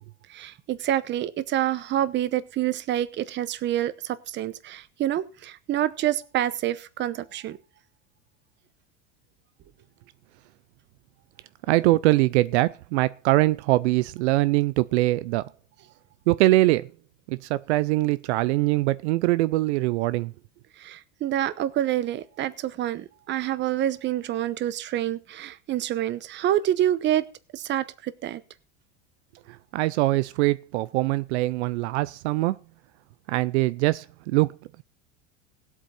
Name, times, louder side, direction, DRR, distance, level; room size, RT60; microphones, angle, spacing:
voice 1, 0.3-7.6 11.7-11.8 20.8-27.3 27.5-28.4, right 12 dB, 30° right, 0.9 m, -27 dB
voice 2, 11.7-15.5 16.3-16.9 17.3-20.3 29.5-32.6 33.3-34.5, right 19 dB, 75° right, 0.6 m, -23 dB
17.0 x 8.3 x 4.3 m
supercardioid pair, 130°, 35 cm